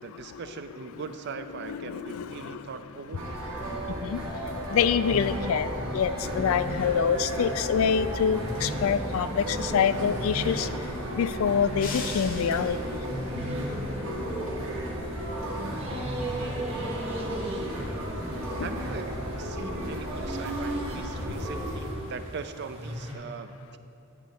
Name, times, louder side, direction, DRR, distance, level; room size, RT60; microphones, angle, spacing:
voice 1, 0.0-3.4 18.6-19.1 19.4-23.8, right 5 dB, 50° right, 10 dB, 0.4 m, -40 dB
voice 2, 1.7-2.7 4.0-4.2 4.7-10.7 11.1-13.0, left 7 dB, 75° left, 14 dB, 0.3 m, -26 dB
sound 1, 3.2-21.9, equal, 80° right, 1.4 m, -33 dB
sound 2, 6.3-23.1, right 1 dB, 25° right, 1.1 m, -40 dB
sound 3, 11.8-13.1, left 4 dB, 40° left, 0.7 m, -38 dB
9.8 x 4.0 x 6.5 m, 2.7 s
head